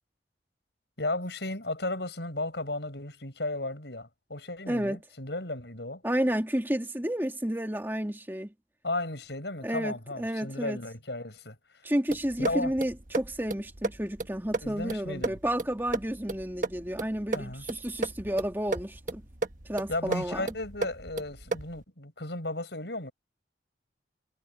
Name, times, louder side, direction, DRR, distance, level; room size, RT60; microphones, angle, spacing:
voice 1, 1.0-6.0 8.8-11.6 12.4-12.7 14.6-15.4 17.3-17.6 19.9-23.1, left 2 dB, 70° left, 6.2 m, -34 dB
voice 2, 4.7-5.0 6.0-8.5 9.6-10.8 11.8-19.2 19.7-20.4, equal, 10° right, 2.3 m, -31 dB
sound 1, 12.1-21.8, right 3 dB, 45° right, 1.3 m, -35 dB
head